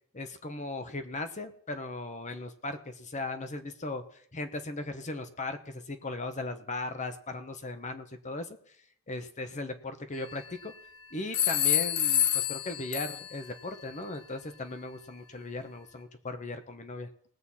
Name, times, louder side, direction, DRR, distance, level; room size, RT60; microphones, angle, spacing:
voice 1, 0.1-4.0 4.3-8.6 9.1-10.7 11.1-17.1, left 2 dB, 35° left, 8 dB, 1.0 m, -37 dB
sound 1, 10.1-10.8 11.3-13.5, left 10 dB, 80° left, 1.4 m, -28 dB
19.5 x 7.9 x 4.2 m, 0.62 s
head